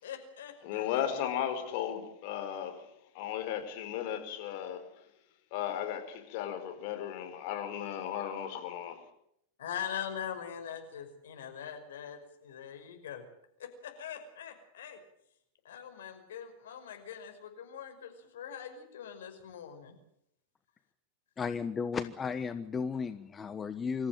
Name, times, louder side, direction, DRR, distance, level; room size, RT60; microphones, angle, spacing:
voice 1, 0.0-1.1 9.6-13.2 13.6-15.0 15.6-20.0, left 9 dB, 70° left, 5.4 m, -42 dB
voice 2, 0.6-2.8 3.1-4.8 5.5-9.0, left 10 dB, 55° left, 4.8 m, -35 dB
voice 3, 21.4-24.1, left 5 dB, 20° left, 1.1 m, -34 dB
26.0 x 14.5 x 9.2 m
hypercardioid pair, 95°, 0 cm